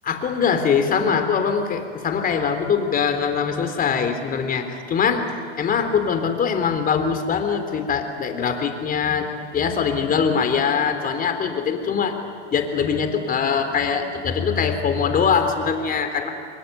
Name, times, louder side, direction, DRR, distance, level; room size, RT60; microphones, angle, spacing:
voice 1, 0.0-5.3 5.6-12.2 12.5-16.3, left 6 dB, 25° left, 6 dB, 3.7 m, -22 dB
29.0 x 22.0 x 9.5 m, 2.5 s
hypercardioid pair, 120°, 34 cm